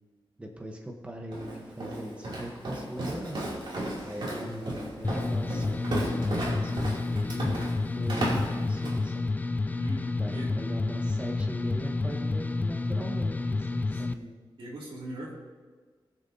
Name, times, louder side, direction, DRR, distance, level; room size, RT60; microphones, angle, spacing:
voice 1, 0.4-3.4 4.0-7.5 7.9-9.3 10.1-14.2, right 1 dB, 15° right, 1 dB, 1.0 m, -40 dB
Walk footsteps, 1.3-9.1, right 1 dB, 60° right, 2.7 m, -34 dB
voice 2, 4.3-4.8 9.8-10.5 13.9-15.3, right 1 dB, 80° right, -3 dB, 2.6 m, -42 dB
sound 1, 5.0-14.1, left 3 dB, 20° left, 0.4 m, -30 dB
20.5 x 6.9 x 2.8 m, 1.5 s
wide cardioid pair, 165°, 9 cm